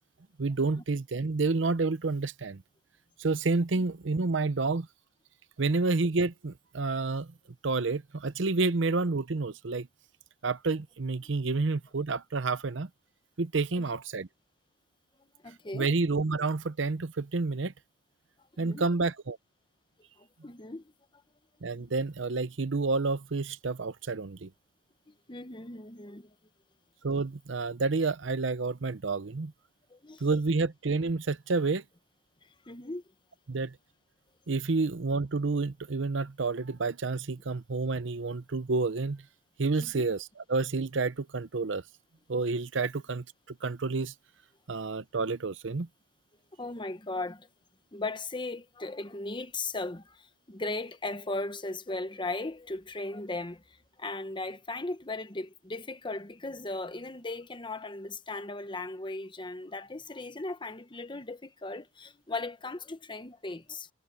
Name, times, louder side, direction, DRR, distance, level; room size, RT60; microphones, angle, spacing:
voice 1, 0.4-2.6 3.2-4.9 5.6-7.3 7.6-9.9 10.4-12.9 13.4-14.3 15.7-17.7 18.6-19.4 21.6-24.5 27.0-29.5 30.2-31.8 33.5-33.7 34.5-39.2 39.6-41.8 42.3-43.2 43.6-44.1 44.7-45.9, right 3 dB, 75° right, 0.7 m, -29 dB
voice 2, 15.4-15.9 18.6-18.8 20.2-20.9 21.8-21.9 25.1-26.3 29.9-30.3 32.4-33.0 39.8-40.0 46.6-47.5 47.9-63.9, left 2 dB, 25° left, 1.1 m, -37 dB
head